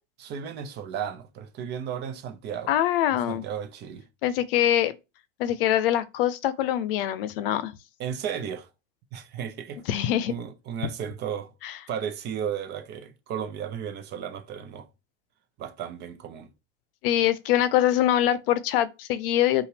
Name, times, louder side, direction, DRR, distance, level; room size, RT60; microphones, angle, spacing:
voice 1, 0.2-2.7 3.3-4.0 8.0-8.7 9.1-9.8 10.3-11.5 11.9-14.9 15.6-16.5, right 8 dB, 35° right, 0.8 m, -34 dB
voice 2, 2.7-3.4 4.2-5.0 5.4-7.7 9.9-10.3 11.6-11.7 17.0-19.7, left 12 dB, 65° left, 0.6 m, -24 dB
5.6 x 2.5 x 3.3 m
supercardioid pair, 140°, 31 cm